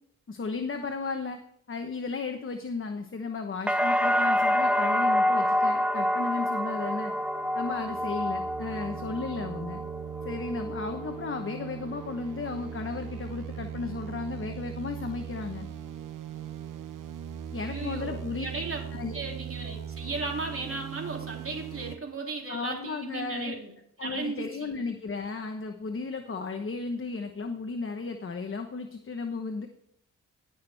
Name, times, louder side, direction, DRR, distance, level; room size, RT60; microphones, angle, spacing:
voice 1, 0.3-1.4 1.7-7.1 7.5-9.8 10.2-15.7 17.5-18.5 18.9-19.1 22.5-23.6 24.0-29.7, left 4 dB, 40° left, 4 dB, 1.1 m, -34 dB
sound 1, 3.7-11.6 11.9-12.6, equal, 5° right, 0.4 m, -28 dB
sound 2, 6.8-22.0, right 9 dB, 80° right, 1.0 m, -40 dB
voice 2, 17.6-18.8 19.1-23.7 24.0-24.7, right 3 dB, 45° right, 0 dB, 3.4 m, -36 dB
17.5 x 6.3 x 3.4 m, 0.71 s
cardioid pair, 85°, 32 cm